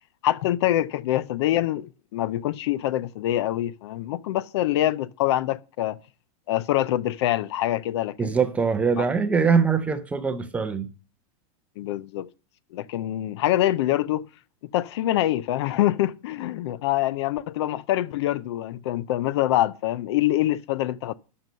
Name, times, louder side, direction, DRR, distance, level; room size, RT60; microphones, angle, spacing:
voice 1, 0.2-6.0 6.5-8.4 9.0-9.1 11.8-12.3 12.7-14.3 14.7-21.1, left 14 dB, 50° left, 0.5 m, -25 dB
voice 2, 8.2-10.9, right 5 dB, 5° right, 0.6 m, -22 dB
12.5 x 5.4 x 6.6 m
supercardioid pair, 175°, 18 cm